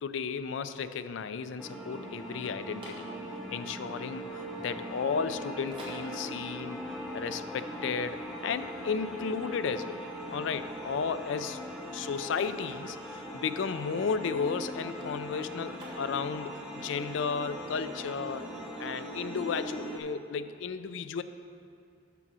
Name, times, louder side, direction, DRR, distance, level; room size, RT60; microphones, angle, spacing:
voice 1, 0.0-3.1 3.5-4.3 4.6-6.8 7.1-10.0 10.3-11.6 11.9-18.5 18.8-21.2, left 5 dB, 70° left, 12 dB, 0.4 m, -34 dB
sound 1, 1.6-20.0, equal, 5° right, 0.7 m, -40 dB
sound 2, 2.3-16.6, right 1 dB, 25° right, 1.5 m, -53 dB
6.8 x 6.0 x 6.1 m, 2.4 s
head